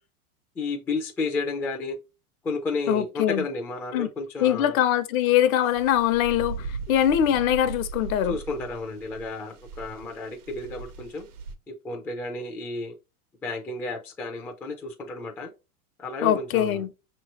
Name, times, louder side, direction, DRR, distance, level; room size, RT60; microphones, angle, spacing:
voice 1, 0.6-2.0 2.4-4.8 8.3-11.3 11.8-12.9 13.4-15.5 16.0-16.8, left 3 dB, 5° left, 0.3 m, -32 dB
voice 2, 2.9-3.5 3.9-4.1 4.4-8.4 16.2-16.9, left 11 dB, 65° left, 0.8 m, -23 dB
sound 1, 5.7-11.5, right 4 dB, 80° right, 1.0 m, -39 dB
5.7 x 3.1 x 2.9 m
hypercardioid pair, 120°, 44 cm